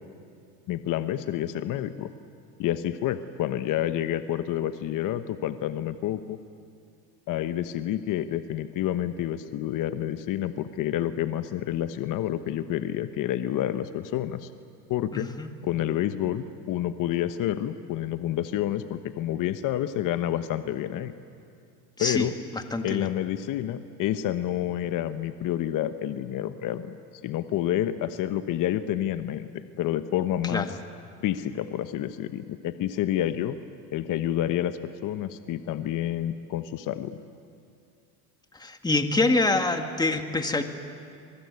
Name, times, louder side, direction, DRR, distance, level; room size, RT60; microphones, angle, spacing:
voice 1, 0.7-2.1 2.6-6.4 7.3-14.5 14.9-15.3 15.6-21.1 22.0-22.3 22.8-27.0 27.2-30.7 31.2-33.6 33.9-37.2, left 12 dB, 50° left, 10 dB, 1.1 m, -29 dB
voice 2, 15.1-15.5 22.0-22.3 22.5-23.1 30.5-30.7 38.5-40.6, left 2 dB, 10° left, 6 dB, 1.9 m, -25 dB
25.0 x 21.5 x 9.6 m, 2.4 s
supercardioid pair, 100°, 39 cm